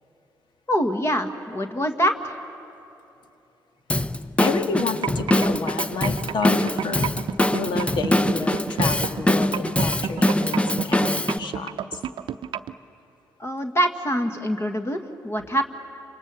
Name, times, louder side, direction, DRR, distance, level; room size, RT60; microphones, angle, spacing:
voice 1, 0.7-2.4 13.4-15.6, equal, 30° left, 5 dB, 1.7 m, -24 dB
Drum kit / Drum, 3.9-11.4, left 1 dB, 15° left, 0.8 m, -23 dB
voice 2, 4.4-7.1 7.5-12.0, left 4 dB, 60° left, 7 dB, 1.7 m, -30 dB
sound 1, 4.8-12.7, right 9 dB, 60° right, 0.7 m, -30 dB
29.5 x 26.5 x 6.8 m, 2.9 s
hypercardioid pair, 45°, 9 cm